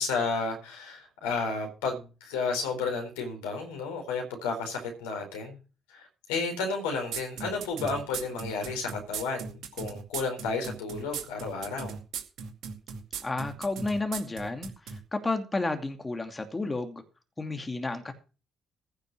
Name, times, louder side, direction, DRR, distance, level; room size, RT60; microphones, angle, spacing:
voice 1, 0.0-5.6 5.9-12.0, left 4 dB, 80° left, 3 dB, 4.2 m, -32 dB
sound 1, 7.1-15.0, right 6 dB, 65° right, 2.3 m, -37 dB
voice 2, 13.2-17.0 17.4-18.1, left 2 dB, 25° left, 6 dB, 2.5 m, -32 dB
15.5 x 6.7 x 6.1 m, 0.34 s
hypercardioid pair, 45°, 0 cm